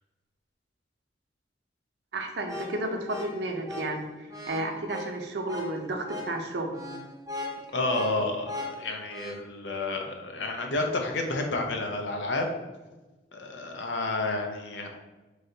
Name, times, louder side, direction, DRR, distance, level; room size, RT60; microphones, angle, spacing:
voice 1, 2.1-6.7, right 2 dB, 65° right, 3 dB, 0.6 m, -32 dB
sound 1, 2.4-9.4, left 2 dB, 15° right, 0.6 m, -39 dB
voice 2, 7.7-12.5 13.3-14.9, left 2 dB, 80° left, 3 dB, 0.6 m, -30 dB
3.2 x 2.7 x 3.8 m, 1.2 s
head